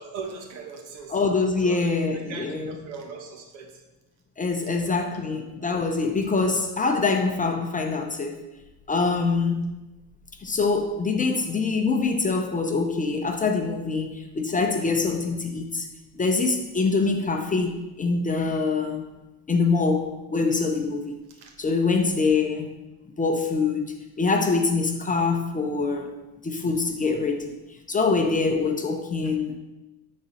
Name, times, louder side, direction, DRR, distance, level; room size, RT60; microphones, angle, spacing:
voice 1, 0.0-1.2 1.6-3.7 4.8-5.7 21.4-21.5, right 5 dB, 85° right, 3 dB, 1.5 m, -39 dB
voice 2, 1.1-2.8 4.4-8.4 8.9-9.8 10.4-15.9 16.1-19.0 19.5-21.1 21.6-22.7 23.2-26.1 26.4-27.5 27.9-29.6, left 4 dB, 15° left, 4 dB, 0.5 m, -24 dB
9.9 x 4.2 x 4.1 m, 1.0 s
supercardioid pair, 115°, 49 cm